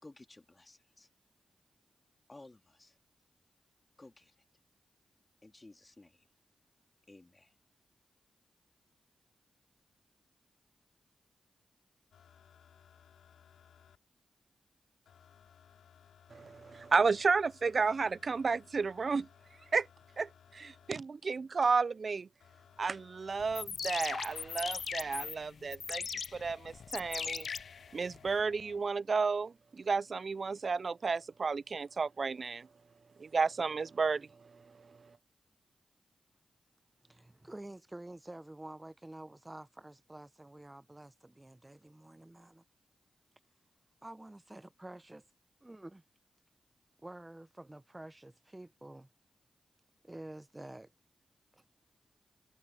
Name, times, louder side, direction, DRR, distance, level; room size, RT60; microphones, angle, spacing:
voice 1, 0.0-1.1 2.3-3.0 4.0-4.4 5.4-6.3 7.1-7.6, left 2 dB, 30° left, 3.1 m, -56 dB
sound 1, 12.1-14.0 15.0-21.0 22.4-25.4 26.5-28.8 30.0-30.1, left 8 dB, 85° left, 3.4 m, -61 dB
voice 2, 16.3-19.3 19.7-19.9 20.2-22.3 22.8-26.1 26.3-27.5 27.9-32.7 33.2-35.1, right 4 dB, 60° right, 0.4 m, -32 dB
sound 2, 23.4-28.4, left 6 dB, 70° left, 0.4 m, -39 dB
voice 3, 37.0-42.6 44.0-45.2 45.6-46.0 47.0-49.1 50.0-50.9 51.5-51.6, right 1 dB, 20° right, 0.9 m, -49 dB
supercardioid pair, 40°, 0 cm